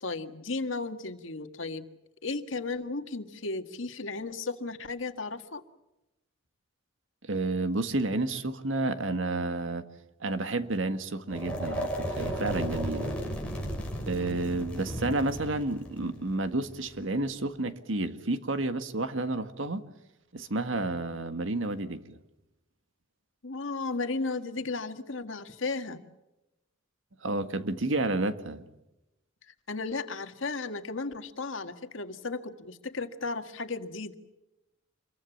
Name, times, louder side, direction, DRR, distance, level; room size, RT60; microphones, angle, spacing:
voice 1, 0.0-1.9 2.2-5.6 23.4-26.0 29.5-34.1, left 3 dB, 85° left, 8 dB, 1.8 m, -35 dB
voice 2, 7.3-9.8 10.2-13.2 14.0-19.8 20.3-22.2 27.2-28.6, right 2 dB, 85° right, 10 dB, 1.7 m, -30 dB
sound 1, 11.3-17.3, equal, 5° left, 5.7 m, -35 dB
27.0 x 22.5 x 7.2 m, 0.93 s
head